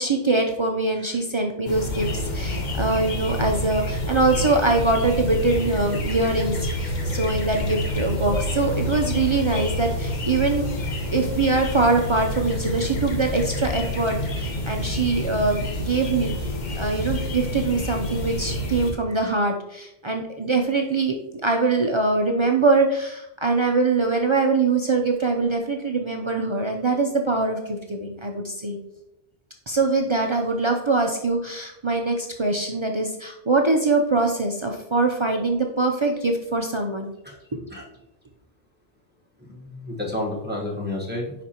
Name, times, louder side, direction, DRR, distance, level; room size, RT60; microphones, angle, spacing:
voice 1, 0.0-10.7 11.1-16.4 16.8-28.8 29.7-37.1 37.5-37.6, right 3 dB, 40° right, 2 dB, 0.4 m, -23 dB
sound 1, 1.7-18.9, left 1 dB, 45° left, 0.9 m, -28 dB
voice 2, 39.4-41.3, left 1 dB, 10° right, -3 dB, 1.2 m, -30 dB
10.0 x 4.1 x 2.9 m, 0.87 s
omnidirectional pair, 1.2 m